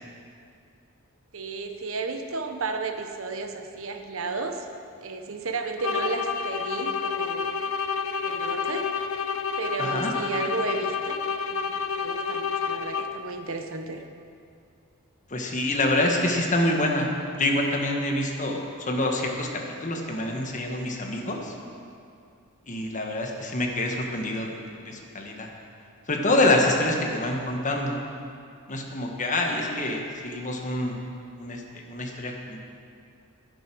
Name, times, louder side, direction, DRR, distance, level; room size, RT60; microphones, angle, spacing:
voice 1, 1.3-4.7 5.0-7.5 8.2-8.9 9.6-11.2 11.5-14.0, right 3 dB, 65° right, 6 dB, 1.0 m, -33 dB
sound 1, 5.8-13.3, left 5 dB, 65° left, 0.6 m, -29 dB
voice 2, 9.8-10.1 15.3-19.5 19.8-21.5 22.7-24.6 24.8-25.5 26.1-28.0 28.7-31.0 31.4-32.6, left 1 dB, 35° left, 1 dB, 1.5 m, -26 dB
11.0 x 10.5 x 6.2 m, 2.4 s
head